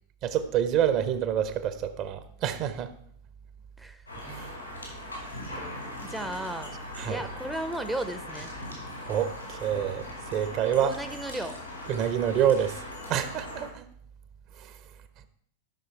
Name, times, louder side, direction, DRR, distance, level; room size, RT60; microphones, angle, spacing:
voice 1, 0.2-3.0 4.2-4.5 4.8-5.0 7.0-7.2 9.1-11.0 11.9-12.8 13.1-13.9 14.6-14.8, right 9 dB, 40° right, 11 dB, 0.9 m, -27 dB
sound 1, 4.1-13.7, left 1 dB, 85° left, 4.4 m, -40 dB
voice 2, 6.0-6.8 7.1-8.5 10.8-11.6, right 1 dB, 5° right, 8 dB, 0.8 m, -35 dB
12.5 x 6.4 x 4.7 m, 0.63 s
figure-of-eight pair, 90°, 0 cm